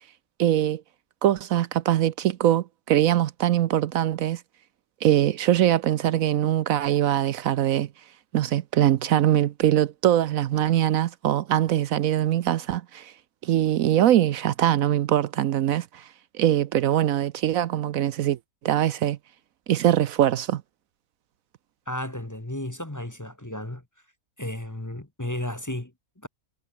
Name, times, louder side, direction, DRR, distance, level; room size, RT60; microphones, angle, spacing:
voice 1, 0.4-0.8 1.2-4.4 5.0-7.9 8.3-13.1 13.4-16.1 16.4-18.4 18.6-19.2 19.7-20.6, right 12 dB, 70° right, 1.0 m, -22 dB
voice 2, 21.9-23.8 24.4-26.3, left 1 dB, 15° left, 1.3 m, -33 dB
omnidirectional pair, 1.5 m